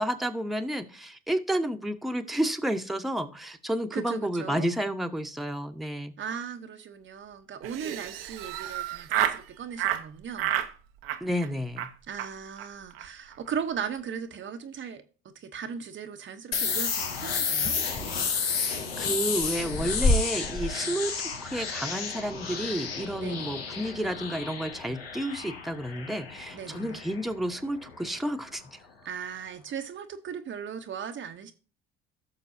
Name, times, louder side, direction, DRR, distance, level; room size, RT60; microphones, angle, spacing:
voice 1, 0.0-6.1 11.2-11.9 18.5-28.8, equal, ahead, 1.1 m, -31 dB
voice 2, 3.9-4.7 6.2-10.5 12.1-17.8 20.8-21.0 23.2-23.6 26.5-27.0 29.0-31.5, right 7 dB, 40° right, 1.0 m, -38 dB
Laughter, 7.6-9.4 9.8-10.0 10.4-10.7 11.0-11.5 11.8-11.9 12.2-12.3 12.6-12.7 12.9-13.1 13.3-13.7, right 12 dB, 80° right, 1.0 m, -30 dB
sound 1, 16.5-28.1, left 6 dB, 90° left, 1.2 m, -32 dB
sound 2, 17.6-18.7 19.3-20.7, left 2 dB, 45° left, 3.1 m, -28 dB
16.0 x 6.6 x 2.7 m
hypercardioid pair, 60°, 29 cm